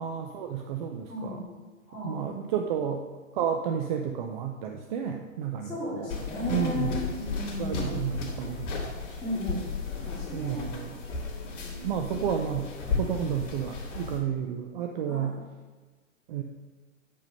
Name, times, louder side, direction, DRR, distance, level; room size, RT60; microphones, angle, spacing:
voice 1, 0.0-1.4 2.0-3.0 3.3-6.1 6.5-7.0 7.6-8.7 10.3-10.9 11.8-15.4 16.3-16.4, right 8 dB, 35° right, 4 dB, 0.6 m, -31 dB
voice 2, 1.1-1.5 1.9-2.3 5.6-8.0 9.2-9.6 10.0-10.7 11.5-11.8 15.0-15.3, left 2 dB, 5° left, -15 dB, 2.7 m, -35 dB
sound 1, 6.1-14.2, left 4 dB, 35° left, 2.6 m, -34 dB
8.9 x 5.3 x 5.4 m, 1.3 s
hypercardioid pair, 135°, 41 cm